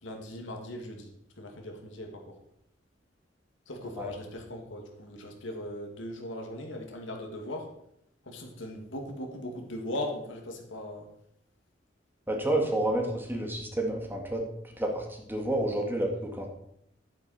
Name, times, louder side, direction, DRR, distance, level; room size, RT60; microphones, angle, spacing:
voice 1, 0.0-2.4 3.7-7.7 8.2-11.1, left 1 dB, 75° left, 2 dB, 2.2 m, -39 dB
voice 2, 12.3-14.5 14.8-16.5, right 1 dB, 10° right, 1 dB, 1.9 m, -29 dB
11.0 x 9.6 x 4.3 m, 0.75 s
head